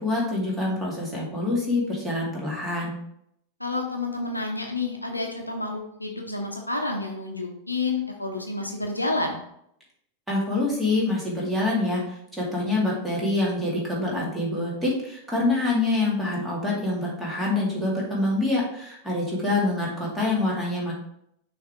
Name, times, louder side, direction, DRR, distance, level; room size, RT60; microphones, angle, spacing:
voice 1, 0.0-3.0 10.3-20.9, left 2 dB, 5° right, -5 dB, 2.3 m, -26 dB
voice 2, 3.6-9.4, left 3 dB, 85° left, 2 dB, 0.8 m, -29 dB
6.4 x 3.3 x 4.7 m, 0.73 s
figure-of-eight pair, 90°, 0 cm